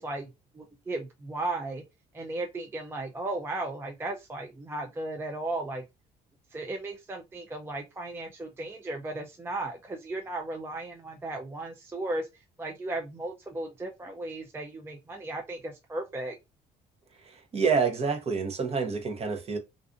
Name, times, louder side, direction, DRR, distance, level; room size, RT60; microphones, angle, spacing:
voice 1, 0.0-1.8 2.1-5.8 6.5-16.4, right 2 dB, 15° right, 0.4 m, -35 dB
voice 2, 17.2-19.6, right 5 dB, 35° right, 0.7 m, -28 dB
2.4 x 2.4 x 2.5 m
cardioid pair, 110°, 17 cm